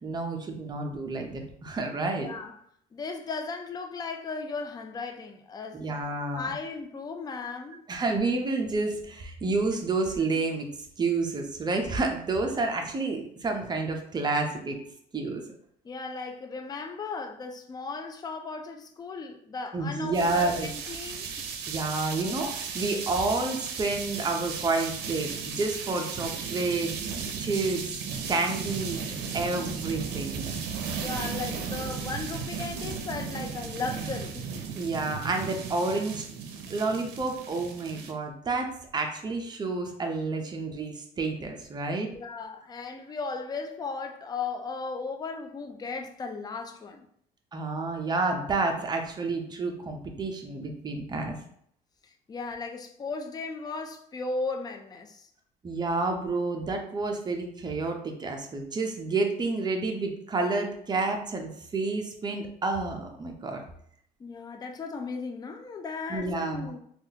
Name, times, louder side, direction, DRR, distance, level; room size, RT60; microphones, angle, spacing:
voice 1, 0.0-2.3 5.7-6.5 7.9-10.7 11.0-14.8 15.1-15.4 19.7-20.7 21.7-26.9 27.4-29.0 29.3-30.5 34.7-36.3 36.7-42.1 47.5-51.3 55.6-63.6 66.1-66.7, right 3 dB, 25° right, 0.6 m, -29 dB
voice 2, 2.2-2.5 2.9-5.9 6.3-7.9 15.8-21.3 30.9-34.5 42.1-47.1 52.0-55.3 64.2-66.8, left 4 dB, 25° left, 0.4 m, -36 dB
sound 1, 20.1-38.1, right 6 dB, 80° right, 0.5 m, -35 dB
3.5 x 2.3 x 2.8 m
cardioid pair, 110°, 17 cm